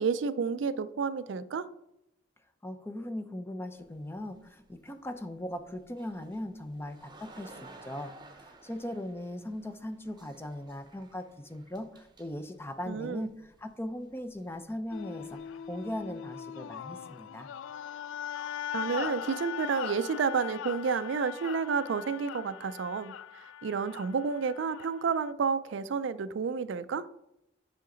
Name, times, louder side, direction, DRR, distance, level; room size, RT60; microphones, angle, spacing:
voice 1, 0.0-1.7 12.9-13.3 18.7-27.1, right 5 dB, 65° right, 0.4 m, -30 dB
voice 2, 2.6-8.1 8.4-15.4 15.7-17.5, left 1 dB, 10° left, 0.6 m, -39 dB
sound 1, 3.7-16.2, right 2 dB, 25° right, 0.9 m, -56 dB
sound 2, 14.9-25.3, left 9 dB, 80° left, 0.3 m, -40 dB
8.3 x 5.8 x 3.8 m
head